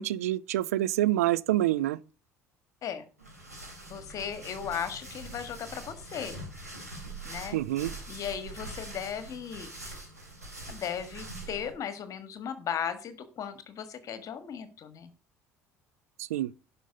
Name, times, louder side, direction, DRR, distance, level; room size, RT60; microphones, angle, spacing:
voice 1, 0.0-2.0 7.5-7.9 16.2-16.5, right 14 dB, 70° right, 0.4 m, -27 dB
sound 1, 3.2-11.7, right 2 dB, 90° right, 3.6 m, -43 dB
voice 2, 3.9-6.4 7.2-7.6 8.1-9.7 10.7-15.1, left 8 dB, 40° left, 1.5 m, -36 dB
11.0 x 5.4 x 5.2 m
figure-of-eight pair, 60°, 8 cm